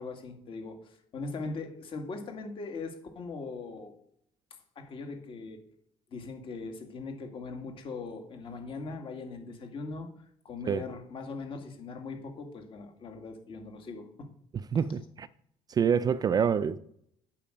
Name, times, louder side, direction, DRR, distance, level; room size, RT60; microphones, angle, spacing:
voice 1, 0.0-3.9 4.8-5.6 6.1-10.1 10.4-14.3, left 3 dB, 45° left, 2.0 m, -40 dB
voice 2, 14.5-15.3 15.7-16.8, right 7 dB, 30° right, 0.4 m, -27 dB
8.7 x 7.7 x 5.0 m
cardioid pair, 145°, 13 cm